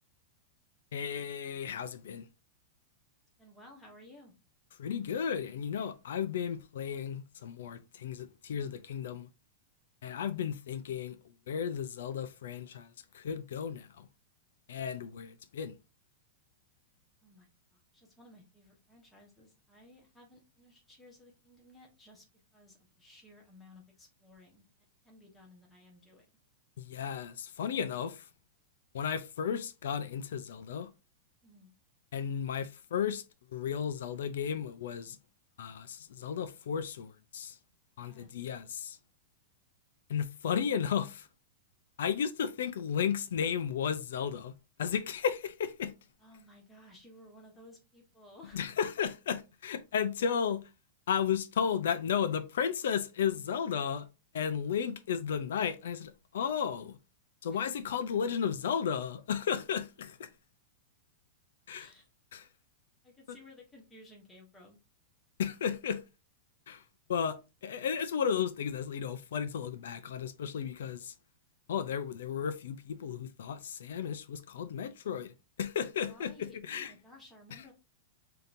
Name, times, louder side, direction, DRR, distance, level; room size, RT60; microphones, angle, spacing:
voice 1, 0.9-2.3 4.8-9.3 10.0-11.2 11.5-14.1 14.7-15.7 26.8-28.3 28.9-30.9 32.1-33.2 33.5-35.2 35.6-37.6 38.0-39.0 40.1-41.3 42.0-44.5 44.8-45.9 48.5-50.6 51.1-54.1 54.3-57.0 57.4-60.3 61.7-61.9 62.3-62.5 65.4-66.0 66.7-66.8 67.1-71.1 71.7-76.9, left 7 dB, 80° left, 0.5 m, -34 dB
voice 2, 3.4-4.3 17.2-22.2 22.5-24.6 25.0-26.3 31.4-31.7 37.9-38.3 46.2-48.6 57.5-57.6 61.7-62.1 63.0-64.8 76.0-77.7, left 1 dB, 10° left, 1.1 m, -57 dB
5.1 x 2.8 x 2.6 m
supercardioid pair, 170°, 0 cm